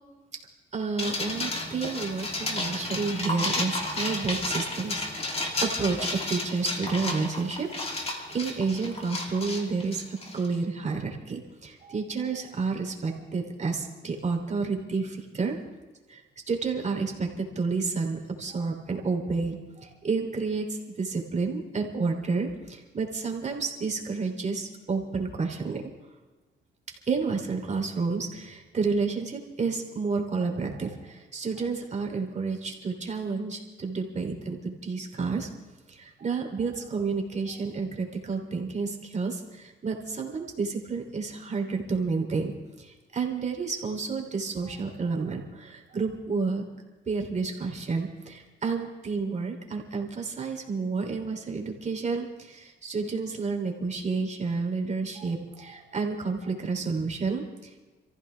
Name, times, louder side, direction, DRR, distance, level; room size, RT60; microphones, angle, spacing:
voice 1, 0.7-7.7 7.9-10.0 10.3-15.6 16.1-16.2 16.5-25.8 27.1-35.5 35.9-42.5 42.8-46.6 47.1-57.8, right 4 dB, 35° right, 2 dB, 3.2 m, -30 dB
sound 1, 1.0-10.5, left 2 dB, 30° left, 2.9 m, -32 dB
28.0 x 15.0 x 3.4 m, 1.2 s
cardioid pair, 90°, 20 cm